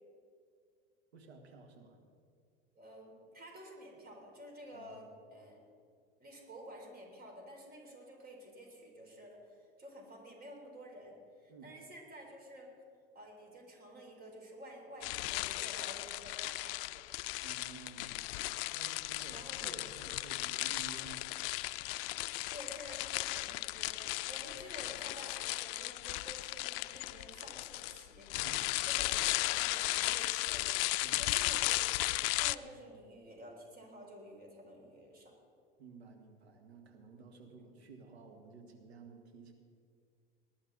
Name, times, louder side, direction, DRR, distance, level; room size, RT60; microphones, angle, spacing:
voice 1, 1.1-2.0 4.7-5.0 11.5-11.7 17.4-18.3 18.7-21.8 24.2-24.6 28.3-28.7 30.9-31.2 32.6-33.0 35.8-39.5, right 4 dB, 90° right, 4 dB, 2.0 m, -54 dB
voice 2, 2.7-5.6 6.2-12.7 13.1-17.1 19.3-20.1 22.5-28.3 28.8-35.4 37.6-37.7, equal, 30° right, 1 dB, 3.9 m, -51 dB
sound 1, 15.0-32.5, left 20 dB, 65° left, 0.4 m, -36 dB
20.0 x 11.5 x 4.0 m, 2.2 s
hypercardioid pair, 85°, 31 cm